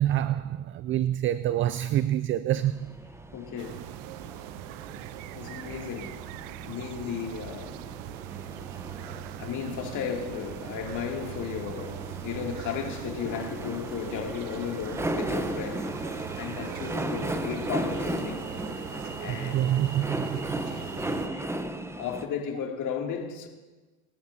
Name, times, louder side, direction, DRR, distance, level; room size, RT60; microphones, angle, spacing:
voice 1, 0.0-3.0 19.3-20.7, right 12 dB, 30° right, 0.4 m, -27 dB
sound 1, 2.5-22.3, right 1 dB, 5° right, 1.0 m, -36 dB
voice 2, 3.3-3.9 5.3-6.2 6.6-7.8 8.7-18.5 19.2-20.1 20.6-21.5 21.9-23.5, left 7 dB, 45° left, 2.8 m, -35 dB
sound 2, 3.6-21.3, right 15 dB, 65° right, 0.7 m, -41 dB
27.0 x 12.5 x 2.8 m
hypercardioid pair, 75°, 40 cm